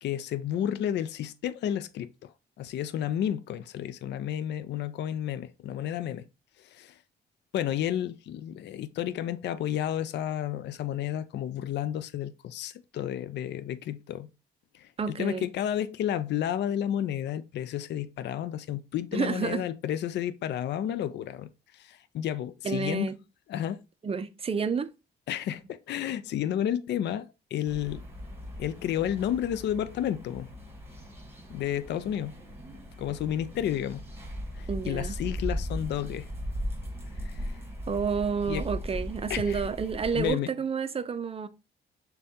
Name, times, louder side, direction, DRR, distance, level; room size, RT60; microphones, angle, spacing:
voice 1, 0.0-6.3 6.6-7.0 7.5-14.3 14.7-23.1 23.5-23.8 25.3-28.0 28.6-30.5 31.5-32.4 33.0-34.0 34.5-36.3 37.1-37.6 38.5-38.7 39.3-39.6 40.1-40.5, left 10 dB, 60° left, 0.4 m, -31 dB
voice 2, 15.0-15.5 19.1-19.6 22.6-23.2 24.0-24.9 34.7-35.2 37.9-41.5, right 5 dB, 30° right, 0.5 m, -30 dB
sound 1, 27.7-40.3, equal, 10° right, 1.3 m, -38 dB
6.7 x 2.3 x 2.7 m
cardioid pair, 90°, 20 cm